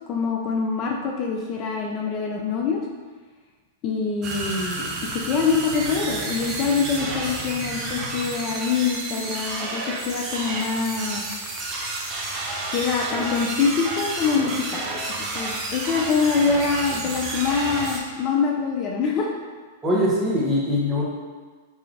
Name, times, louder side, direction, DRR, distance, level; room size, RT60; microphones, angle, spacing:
voice 1, 0.1-2.8 3.8-11.2 12.7-14.8 15.2-19.4, left 5 dB, 40° left, 0 dB, 0.5 m, -25 dB
sound 1, 4.2-18.0, right 2 dB, 35° right, 0.6 m, -30 dB
voice 2, 19.8-21.0, left 1 dB, 20° right, -5 dB, 1.1 m, -22 dB
4.8 x 2.8 x 2.5 m, 1.4 s
hypercardioid pair, 115°, 0 cm